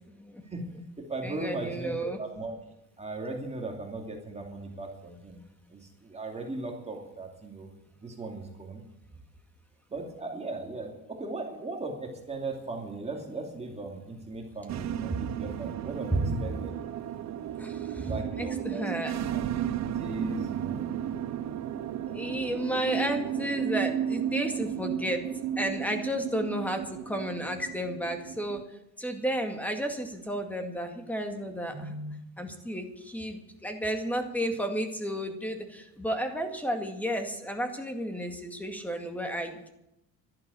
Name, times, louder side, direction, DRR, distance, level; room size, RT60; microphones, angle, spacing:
voice 1, 0.1-0.4 1.2-2.2 15.1-15.3 16.1-16.4 17.6-19.4 22.0-25.3 25.6-28.6 29.0-39.7, right 1 dB, 5° left, 5 dB, 2.0 m, -32 dB
voice 2, 1.1-2.5 3.0-5.4 5.7-7.7 8.0-8.8 9.9-16.7 18.0-18.8 19.3-19.4 19.9-20.8, right 2 dB, 20° right, 1 dB, 2.8 m, -37 dB
sound 1, 14.7-28.6, right 9 dB, 50° right, 0.7 m, -34 dB
12.5 x 11.0 x 8.3 m, 0.86 s
cardioid pair, 140°, 36 cm